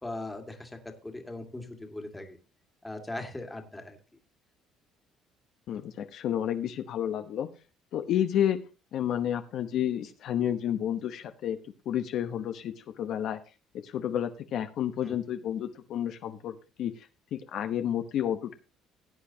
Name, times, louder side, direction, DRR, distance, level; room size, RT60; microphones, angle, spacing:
voice 1, 0.0-2.4 2.8-4.0 15.0-15.2, left 2 dB, 10° left, 4 dB, 2.0 m, -39 dB
voice 2, 5.7-7.5 7.9-8.6 8.9-11.6 11.9-13.4 13.8-18.5, left 10 dB, 60° left, 7 dB, 1.0 m, -30 dB
17.0 x 8.4 x 2.8 m, 0.32 s
cardioid pair, 125°, 0 cm